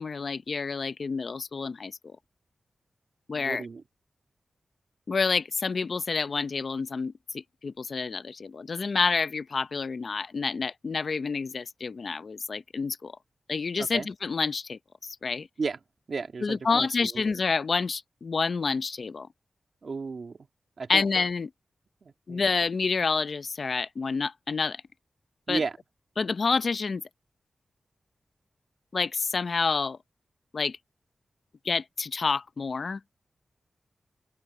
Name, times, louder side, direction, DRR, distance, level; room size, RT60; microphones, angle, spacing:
voice 1, 0.0-2.2 3.3-3.7 5.1-13.1 13.5-15.5 16.4-19.3 20.9-21.5 22.3-24.8 25.5-25.6 26.2-27.0 28.9-30.0 30.5-30.8 31.6-33.0, left 4 dB, 60° left, 0.8 m, -28 dB
voice 2, 3.3-3.8 13.8-14.1 15.6-15.8 16.1-16.9 17.1-17.2 19.8-20.4 20.8-21.0 22.0-22.4 25.5-25.7, right 4 dB, 60° right, 1.9 m, -33 dB
open air
wide cardioid pair, 85°, 0 cm